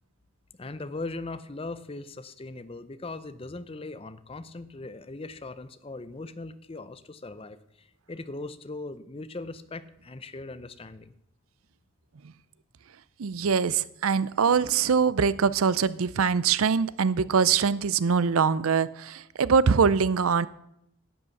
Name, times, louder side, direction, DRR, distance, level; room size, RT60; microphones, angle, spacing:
voice 1, 0.6-11.1, left 2 dB, 25° left, 13 dB, 0.6 m, -39 dB
voice 2, 13.2-20.5, right 6 dB, 80° right, 18 dB, 0.5 m, -23 dB
11.0 x 8.1 x 7.1 m, 0.80 s
head